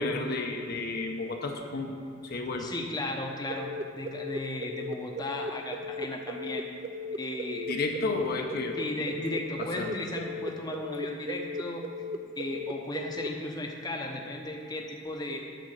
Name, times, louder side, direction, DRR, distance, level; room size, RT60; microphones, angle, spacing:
voice 1, 0.0-1.9 2.2-2.7 7.7-8.8 9.1-9.3 9.8-9.9 10.5-10.6, left 3 dB, 50° left, 2 dB, 0.8 m, -32 dB
voice 2, 2.6-6.7 7.2-7.7 8.8-11.8 12.4-15.4, left 1 dB, 20° left, 1 dB, 0.8 m, -35 dB
sound 1, 3.5-13.3, left 1 dB, 30° right, 0.4 m, -36 dB
9.2 x 5.1 x 7.3 m, 2.5 s
head